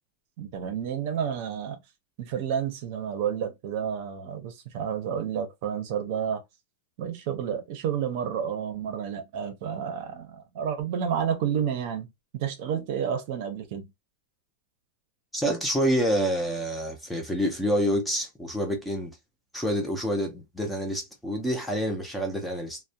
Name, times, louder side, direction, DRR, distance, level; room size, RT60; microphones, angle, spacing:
voice 1, 0.4-1.8 2.2-6.4 7.0-12.1 12.4-13.9, right 8 dB, 45° right, 0.6 m, -30 dB
voice 2, 15.3-19.2 19.5-22.8, equal, 5° left, 0.5 m, -27 dB
2.3 x 2.1 x 2.7 m
supercardioid pair, 165°, 0 cm